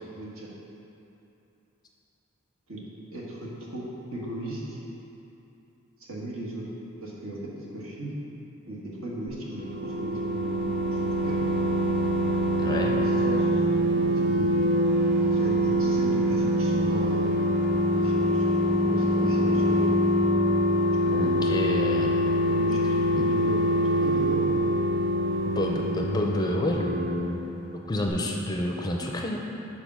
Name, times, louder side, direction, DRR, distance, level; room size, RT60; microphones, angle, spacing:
voice 1, 0.1-0.5 2.7-2.8 3.1-4.8 6.1-6.7 7.0-8.1 8.7-11.4 12.9-14.7 15.1-17.4 17.9-19.9 21.0-21.5 22.5-24.7 25.4-25.5, right 1 dB, 75° right, -5 dB, 1.5 m, -37 dB
sound 1, 9.3-27.8 28.1-28.2, equal, 55° right, 0.6 m, -24 dB
voice 2, 12.6-12.9 21.1-22.2 23.1-23.3 25.4-27.4 27.8-29.4, left 1 dB, 20° left, 0 dB, 0.5 m, -29 dB
7.0 x 4.5 x 6.1 m, 2.8 s
head